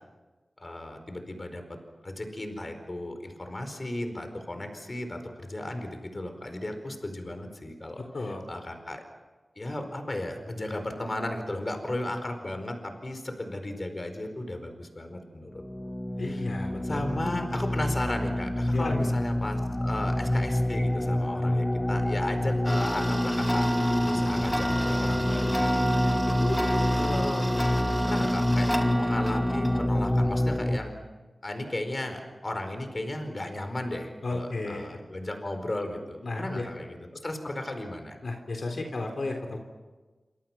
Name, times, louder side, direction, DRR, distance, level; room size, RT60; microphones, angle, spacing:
voice 1, 0.6-1.6 2.0-9.0 9.6-15.6 16.2-16.4 16.8-23.7 24.0-26.6 26.9-27.5 28.0-28.7 29.0-30.9 31.4-38.2, left 1 dB, 35° left, 6 dB, 4.7 m, -35 dB
voice 2, 8.0-8.4 16.2-17.2 18.7-19.1 34.2-35.0 36.2-36.7 38.2-39.6, left 2 dB, 70° left, 3 dB, 3.6 m, -33 dB
sound 1, 15.5-30.8, left 1 dB, 15° left, 1.6 m, -27 dB
Tick-tock, 22.6-29.9, right 1 dB, ahead, 2.5 m, -30 dB
28.0 x 26.5 x 6.0 m, 1.2 s
wide cardioid pair, 90°, 0 cm